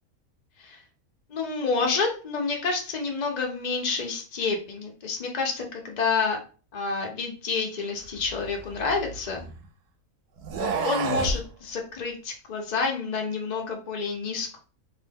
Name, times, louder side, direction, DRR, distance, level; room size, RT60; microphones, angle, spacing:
voice 1, 1.3-6.4 6.7-9.4 10.6-14.6, left 4 dB, 75° left, 1 dB, 0.3 m, -29 dB
sound 1, 8.2-9.6 10.4-11.4, right 4 dB, 90° right, 1.1 m, -30 dB
2.7 x 2.1 x 3.4 m, 0.36 s
omnidirectional pair, 1.6 m